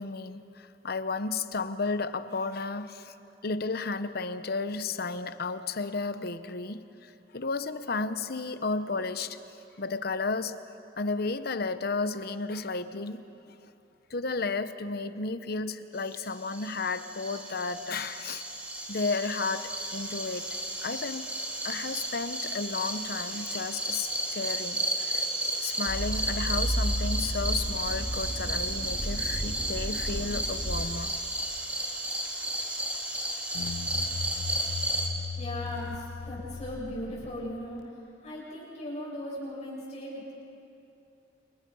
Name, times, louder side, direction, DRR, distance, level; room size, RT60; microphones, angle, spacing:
voice 1, 0.0-3.1 3.4-9.4 9.8-10.6 11.0-13.2 13.6-13.7 14.1-18.4 18.9-20.5 20.8-21.4 21.6-25.3 25.6-31.1, left 3 dB, 55° left, 11 dB, 0.9 m, -33 dB
sound 1, 16.2-35.1, right 1 dB, 10° right, 2.9 m, -33 dB
sound 2, 25.9-30.9, equal, 75° right, 2.6 m, -32 dB
sound 3, 33.5-37.8, left 5 dB, 75° left, 0.5 m, -38 dB
voice 2, 35.3-40.3, left 1 dB, 40° left, -6 dB, 7.7 m, -38 dB
29.5 x 28.5 x 5.6 m, 2.8 s
head